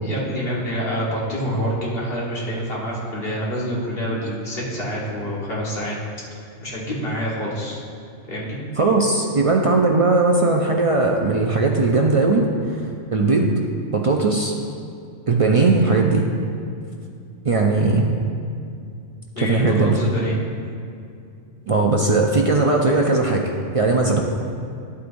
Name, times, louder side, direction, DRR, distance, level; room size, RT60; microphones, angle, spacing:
voice 1, 0.0-6.0 6.6-7.8 8.2-8.6 19.4-20.4, equal, 50° left, -5 dB, 1.8 m, -27 dB
voice 2, 8.8-13.5 13.9-14.5 15.3-16.3 17.4-18.1 19.4-20.0 21.7-24.2, right 3 dB, 60° right, 0 dB, 0.3 m, -18 dB
11.0 x 8.3 x 2.6 m, 2.5 s
omnidirectional pair, 1.3 m